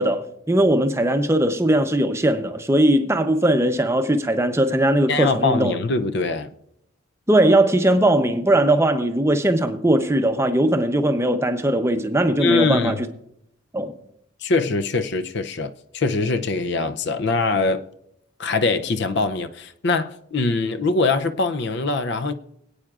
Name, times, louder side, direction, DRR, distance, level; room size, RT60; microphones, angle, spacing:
voice 1, 0.0-5.8 7.3-13.1 13.7-13.9, right 1 dB, 15° right, 0.6 m, -19 dB
voice 2, 5.1-6.5 12.4-13.0 14.4-17.8 18.4-22.3, left 3 dB, 55° left, 0.5 m, -22 dB
25.0 x 8.7 x 2.4 m
head